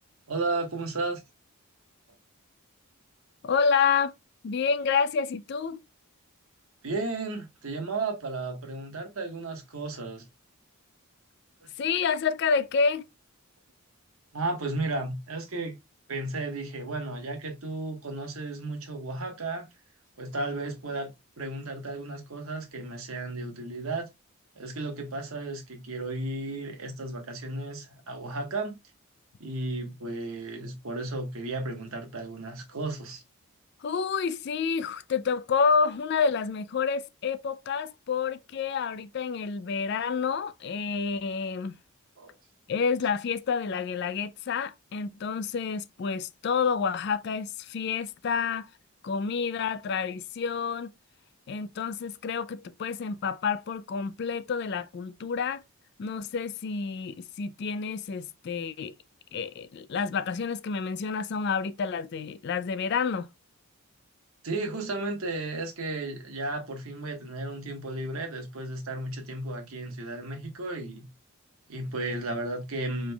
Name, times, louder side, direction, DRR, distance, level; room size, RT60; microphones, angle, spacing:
voice 1, 0.3-1.2 6.8-10.2 11.6-11.7 14.3-15.8 16.1-19.7 20.2-21.1 21.4-24.1 24.5-28.8 29.4-33.2 42.2-42.3 64.4-71.1 71.7-73.1, right 2 dB, 75° right, 1.3 m, -34 dB
voice 2, 3.4-4.1 4.4-5.8 11.8-13.1 33.8-41.8 42.7-48.7 49.0-50.9 51.5-55.6 56.0-58.9 59.3-63.3, left 5 dB, 50° left, 0.3 m, -29 dB
5.0 x 3.3 x 2.2 m
head